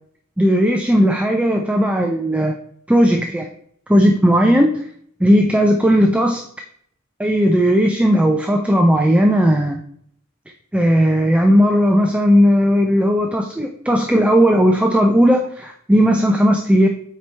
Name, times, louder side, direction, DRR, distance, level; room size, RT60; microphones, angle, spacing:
voice 1, 0.4-2.5 2.9-3.5 3.9-4.7 5.2-6.4 7.2-9.8 10.7-16.9, equal, 5° right, 3 dB, 0.4 m, -15 dB
8.1 x 4.5 x 3.3 m, 0.66 s
head